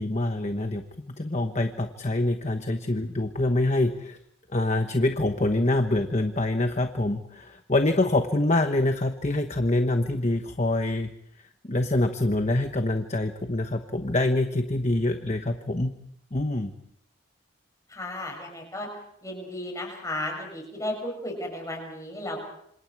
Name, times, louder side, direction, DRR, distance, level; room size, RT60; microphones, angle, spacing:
voice 1, 0.0-4.2 4.5-11.1 11.6-15.9 16.3-16.7, left 2 dB, 35° left, 6 dB, 1.1 m, -25 dB
voice 2, 17.9-18.9 19.2-22.4, left 1 dB, 15° left, 2 dB, 7.0 m, -34 dB
27.5 x 27.0 x 4.8 m, 0.74 s
head